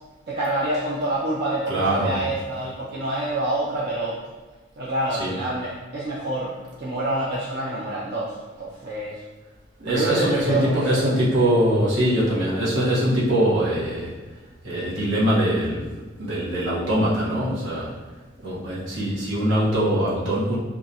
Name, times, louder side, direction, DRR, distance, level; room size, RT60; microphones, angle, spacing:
voice 1, 0.3-4.2 4.8-9.2 9.9-11.2, right 1 dB, 55° right, -7 dB, 0.5 m, -27 dB
voice 2, 1.7-2.2 5.1-5.3 9.8-14.1 14.6-15.9 16.2-17.9 18.4-20.6, equal, 75° right, -8 dB, 1.1 m, -22 dB
4.5 x 2.4 x 2.7 m, 1.2 s
head